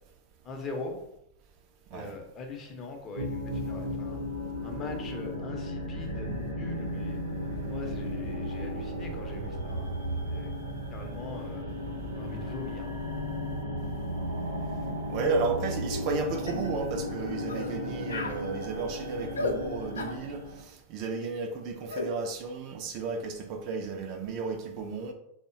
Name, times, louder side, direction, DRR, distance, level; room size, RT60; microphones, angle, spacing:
voice 1, 0.4-1.0 1.9-4.2 4.6-7.2 7.7-10.5 10.9-11.7 12.1-12.9, left 3 dB, 25° left, 0.6 m, -41 dB
sound 1, 3.2-20.6, equal, 70° right, 0.7 m, -35 dB
voice 2, 15.1-25.1, right 4 dB, 40° right, 0.3 m, -33 dB
sound 2, 15.9-16.1 16.5-16.7 17.5-17.7 18.1-18.4 19.4-19.6 20.0-20.2 21.9-22.1, left 3 dB, 70° left, 0.4 m, -33 dB
3.5 x 2.1 x 2.5 m
figure-of-eight pair, 90°, 0 cm